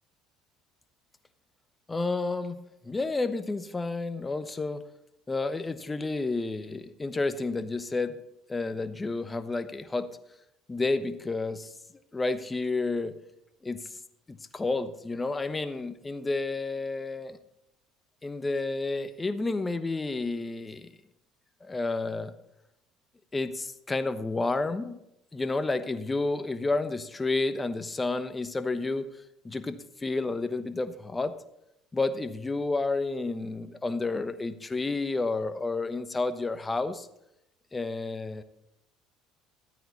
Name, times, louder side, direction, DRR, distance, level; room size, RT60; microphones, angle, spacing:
voice 1, 1.9-4.8 5.3-8.2 8.5-10.1 10.7-11.7 12.1-13.2 13.6-13.9 14.3-17.4 18.2-20.9 21.6-22.3 23.3-25.0 25.3-29.1 29.4-31.3 31.9-37.1 37.7-38.4, left 3 dB, 20° left, 11 dB, 1.0 m, -30 dB
13.0 x 9.1 x 4.1 m, 0.84 s
hypercardioid pair, 75°, 0 cm